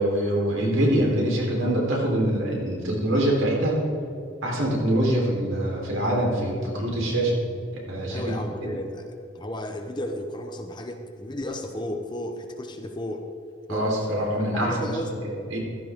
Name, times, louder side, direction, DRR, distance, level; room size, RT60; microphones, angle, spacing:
voice 1, 0.0-3.8 4.4-7.4 7.7-8.2 8.6-8.7 13.7-14.9 15.2-15.6, right 1 dB, 70° right, -2 dB, 3.9 m, -24 dB
voice 2, 8.1-9.1 9.3-13.3 13.7-13.9 14.5-15.1, equal, 20° left, 4 dB, 0.9 m, -33 dB
15.5 x 14.5 x 3.7 m, 2.6 s
head